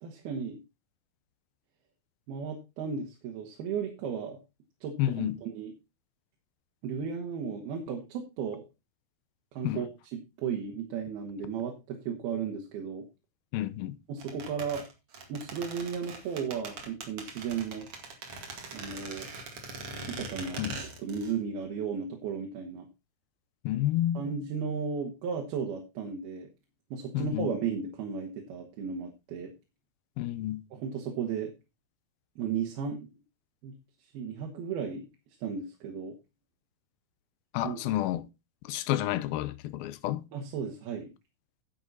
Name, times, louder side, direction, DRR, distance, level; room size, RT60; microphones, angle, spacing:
voice 1, 0.0-0.6 2.3-4.4 4.8-5.7 6.8-8.6 9.5-13.1 14.1-14.9 15.3-17.9 18.7-19.3 20.1-20.6 21.0-22.9 24.2-26.5 26.9-29.5 30.7-31.5 32.4-33.1 33.6-33.7 34.1-35.1 35.4-36.2 37.6-37.9 40.3-41.1, right 6 dB, 80° right, 3.4 m, -35 dB
voice 2, 5.0-5.4 9.6-9.8 13.5-14.0 20.6-20.8 23.6-24.3 27.1-27.5 30.2-30.6 37.5-38.3 38.6-40.2, left 14 dB, 80° left, 2.5 m, -30 dB
sound 1, 14.2-21.4 21.6-21.7, right 3 dB, 45° right, 2.7 m, -41 dB
11.0 x 8.4 x 4.1 m
omnidirectional pair, 4.4 m